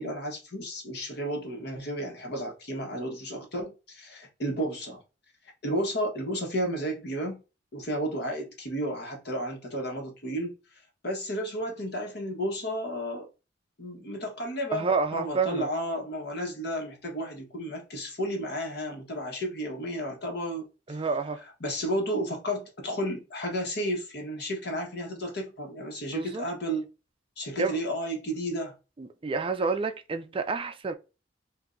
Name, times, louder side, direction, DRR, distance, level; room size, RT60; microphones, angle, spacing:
voice 1, 0.0-5.0 5.6-7.4 7.7-10.6 11.0-13.3 13.8-21.0 21.6-26.8 27.4-28.7, equal, 60° left, 1.3 m, -32 dB
voice 2, 14.7-15.7 20.9-21.4 26.1-26.4 27.6-27.8 29.0-30.9, right 4 dB, 30° right, 0.4 m, -29 dB
5.2 x 2.6 x 2.6 m
head